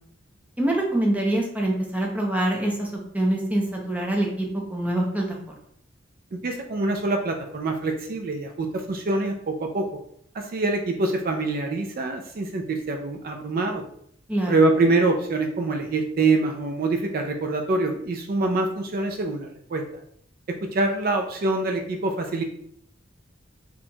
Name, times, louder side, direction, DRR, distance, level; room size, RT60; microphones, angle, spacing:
voice 1, 0.6-2.9 3.1-5.4 14.3-14.5, right 1 dB, 10° right, -1 dB, 0.6 m, -24 dB
voice 2, 6.3-9.9 10.3-13.8 14.5-19.8 20.5-22.4, right 3 dB, 50° right, 4 dB, 0.4 m, -25 dB
4.2 x 2.9 x 2.3 m, 0.67 s
head